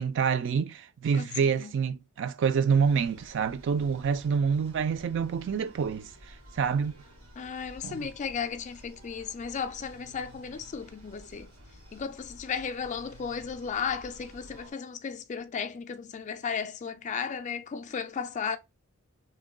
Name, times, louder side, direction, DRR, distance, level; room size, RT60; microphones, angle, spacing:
voice 1, 0.0-6.1 6.6-7.0 7.8-8.0, right 6 dB, 55° right, 0.3 m, -27 dB
sound 1, 2.7-14.7, equal, 90° right, 1.9 m, -52 dB
voice 2, 7.4-11.5 11.9-18.6, left 6 dB, 35° left, 0.3 m, -35 dB
3.0 x 2.2 x 3.6 m
head